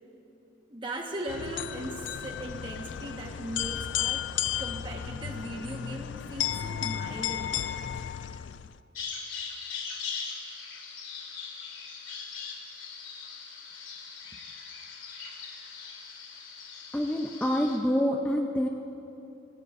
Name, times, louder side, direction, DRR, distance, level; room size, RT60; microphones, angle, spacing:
voice 1, 0.7-8.0, right 1 dB, 25° right, 1 dB, 1.4 m, -39 dB
sound 1, 1.3-8.8, left 10 dB, 70° left, 0.4 m, -34 dB
Bird vocalization bird call bird song, 8.9-17.8, left 5 dB, 85° left, 2.3 m, -40 dB
voice 2, 16.9-18.7, equal, 5° left, 1 dB, 0.6 m, -26 dB
24.5 x 17.5 x 2.6 m, 3.0 s
head